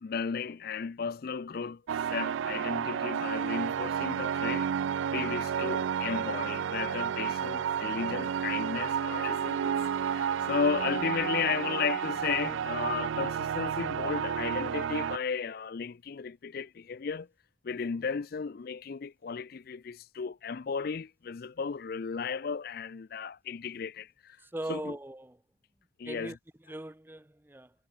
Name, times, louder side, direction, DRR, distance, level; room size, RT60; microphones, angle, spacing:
voice 1, 0.0-1.8 2.1-4.7 5.1-17.3 17.6-24.4 24.7-25.0 26.0-26.4, left 6 dB, 50° left, 0.4 m, -34 dB
sound 1, 1.9-15.2, right 8 dB, 75° right, 0.3 m, -31 dB
voice 2, 24.5-25.4 26.1-26.4 26.7-27.7, right 1 dB, 10° right, 0.5 m, -39 dB
head